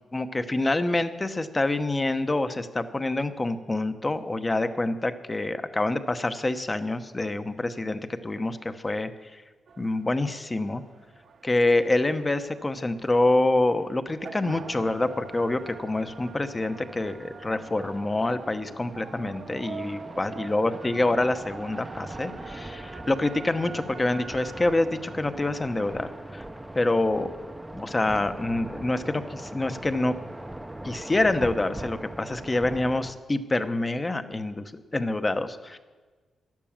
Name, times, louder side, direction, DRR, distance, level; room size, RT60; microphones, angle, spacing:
voice 1, 0.1-9.4 9.8-10.8 11.4-26.4 26.7-27.3 27.7-30.1 30.8-35.8, left 2 dB, 20° left, 10 dB, 0.9 m, -26 dB
sound 1, 9.7-27.2, right 5 dB, 60° right, 1.0 m, -45 dB
sound 2, 14.4-33.1, right 1 dB, 10° right, 0.7 m, -41 dB
12.0 x 11.5 x 7.3 m, 1.3 s
cardioid pair, 105°, 0 cm